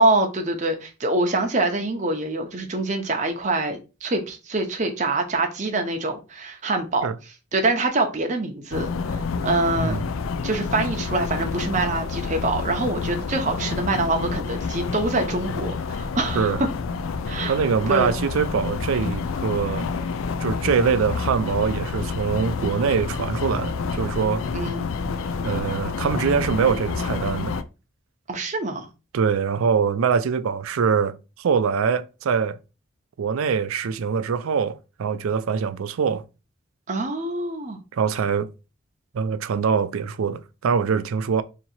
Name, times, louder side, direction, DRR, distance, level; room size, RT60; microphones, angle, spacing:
voice 1, 0.0-7.1 7.5-10.0 10.4-16.5 17.3-17.6 17.9-18.1 24.5-24.9 28.3-28.9 36.9-37.8, right 2 dB, 35° right, 0.7 m, -25 dB
sound 1, 8.7-27.6, left 5 dB, 80° left, 0.4 m, -28 dB
voice 2, 9.8-10.1 16.3-16.6 17.5-19.9 20.4-24.4 25.4-27.6 29.1-32.6 33.2-36.2 37.9-38.5 39.1-41.4, right 6 dB, 90° right, 0.4 m, -23 dB
2.9 x 2.8 x 4.3 m
head